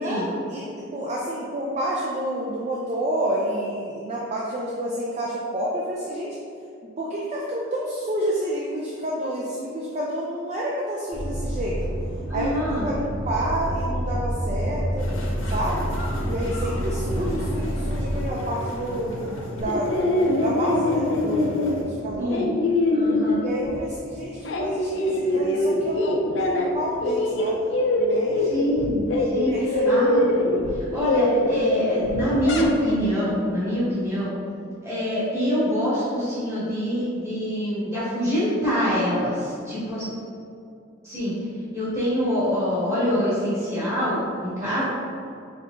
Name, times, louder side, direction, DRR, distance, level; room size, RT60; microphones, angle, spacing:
voice 1, 0.0-6.4 7.0-11.9 12.3-15.1 15.5-15.9 16.3-22.3 23.4-27.7 28.0-28.7 29.5-30.0 44.6-44.8, right 1 dB, 30° right, -4 dB, 0.3 m, -29 dB
sound 1, 11.1-18.3, equal, 65° right, 1.4 m, -28 dB
voice 2, 12.3-12.9 17.3-17.5 22.1-22.4 22.9-23.4 25.2-25.4 28.4-29.5 29.9-30.5 30.9-34.3 34.8-40.0 41.0-41.3 41.7-44.8, equal, 15° right, -11 dB, 1.4 m, -25 dB
sound 2, 15.0-21.8, left 1 dB, 80° left, 0.8 m, -35 dB
sound 3, 19.6-23.9 24.3-26.7 27.0-32.9, left 1 dB, 60° left, 0.4 m, -23 dB
4.5 x 3.6 x 2.5 m, 2.5 s
head